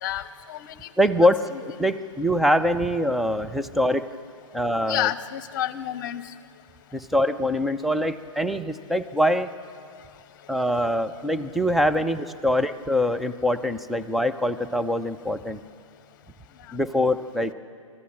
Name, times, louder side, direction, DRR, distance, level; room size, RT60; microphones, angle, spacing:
voice 1, 0.0-0.9 1.5-1.6 4.9-6.2, left 12 dB, 40° left, 14 dB, 0.9 m, -29 dB
voice 2, 1.0-4.0 4.5-5.1 6.9-9.5 10.5-15.6 16.7-17.5, equal, ahead, 9 dB, 0.5 m, -23 dB
25.0 x 14.0 x 7.5 m, 2.3 s
figure-of-eight pair, 125°, 17 cm